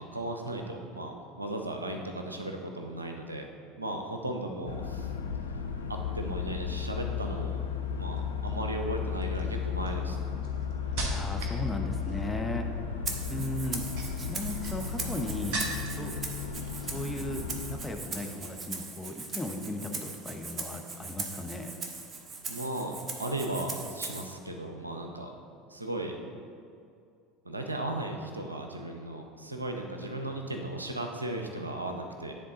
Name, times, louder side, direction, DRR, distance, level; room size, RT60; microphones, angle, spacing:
voice 1, 0.0-3.5 3.8-5.1 5.5-5.6 5.9-7.6 8.0-10.2 22.5-25.3 25.7-26.2 27.4-32.3, right 1 dB, 90° right, 3 dB, 0.5 m, -36 dB
sound 1, 4.7-17.8, left 6 dB, 80° left, 0.4 m, -34 dB
sound 2, 8.1-8.5 9.2-11.6 11.9-12.4 13.7-16.1 16.4-17.0 17.3-17.6, right 2 dB, 55° right, 1.1 m, -39 dB
voice 2, 10.9-12.7 13.3-13.8 14.2-15.6 15.9-16.1 16.9-17.4 17.7-21.7, left 1 dB, 10° left, 3 dB, 0.7 m, -36 dB
Rattle (instrument), 13.1-24.3, right 4 dB, 35° right, 0.9 m, -40 dB
9.7 x 3.6 x 4.0 m, 2.4 s
figure-of-eight pair, 70°, 0 cm